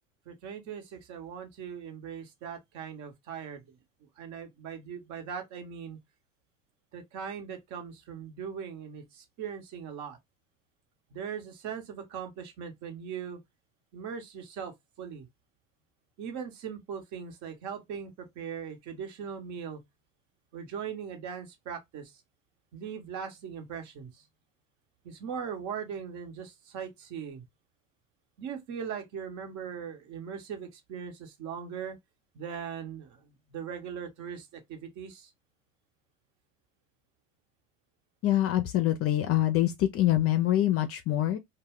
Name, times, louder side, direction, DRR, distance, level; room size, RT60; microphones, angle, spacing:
voice 1, 0.3-3.8 4.2-6.0 6.9-10.2 11.1-13.4 13.9-15.3 16.2-19.8 20.5-22.2 22.7-24.3 25.0-27.4 28.4-32.0 32.3-35.3, right 7 dB, 50° right, 1.1 m, -40 dB
voice 2, 38.2-41.4, left 13 dB, 40° left, 0.5 m, -25 dB
2.2 x 2.2 x 3.5 m
hypercardioid pair, 95°, 36 cm